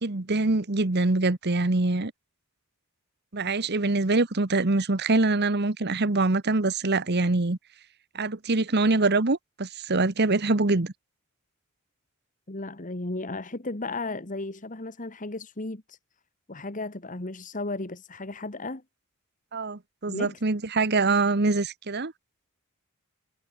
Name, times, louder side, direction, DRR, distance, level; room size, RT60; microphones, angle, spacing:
voice 1, 0.0-2.1 3.3-7.6 8.1-10.9 19.5-22.1, right 3 dB, 50° right, 1.2 m, -24 dB
voice 2, 12.5-16.0 16.5-18.8 20.1-20.4, left 2 dB, 35° left, 1.7 m, -35 dB
head